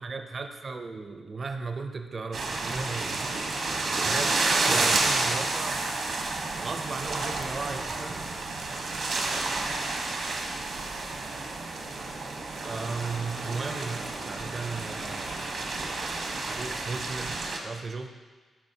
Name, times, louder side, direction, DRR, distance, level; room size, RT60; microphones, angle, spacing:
voice 1, 0.0-5.8 6.5-8.2 12.6-15.7 16.5-18.2, right 4 dB, 45° right, 7 dB, 0.5 m, -36 dB
sound 1, 2.3-17.6, right 3 dB, 70° right, 1.0 m, -30 dB
11.5 x 5.3 x 2.8 m, 1.4 s
cardioid pair, 75°, 0 cm